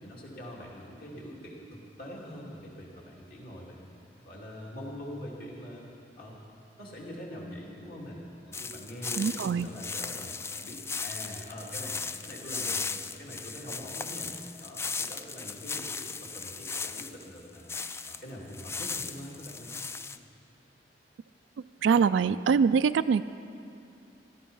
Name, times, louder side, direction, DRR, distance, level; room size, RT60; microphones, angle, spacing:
voice 1, 0.0-3.9 4.2-6.4 6.8-8.2 8.5-12.9 13.2-14.3 14.6-17.7 18.1-19.8, equal, 55° left, -3 dB, 2.7 m, -43 dB
sound 1, 8.5-18.2 18.5-20.2, left 4 dB, 15° left, 0.3 m, -37 dB
voice 2, 9.2-9.7 21.8-23.2, right 6 dB, 85° right, 12 dB, 0.3 m, -23 dB
16.0 x 13.0 x 5.5 m, 2.5 s
head